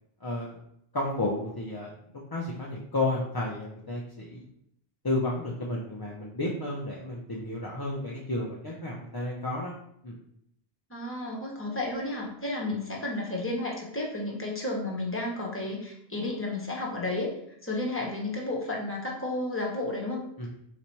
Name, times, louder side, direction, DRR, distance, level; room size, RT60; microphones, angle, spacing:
voice 1, 0.2-0.6 0.9-4.4 5.0-9.7 10.0-10.2 20.4-20.5, left 2 dB, 30° left, -5 dB, 0.5 m, -32 dB
voice 2, 10.9-17.3 17.6-20.5, left 2 dB, 15° left, -3 dB, 0.9 m, -32 dB
4.1 x 2.8 x 4.5 m, 0.73 s
omnidirectional pair, 1.1 m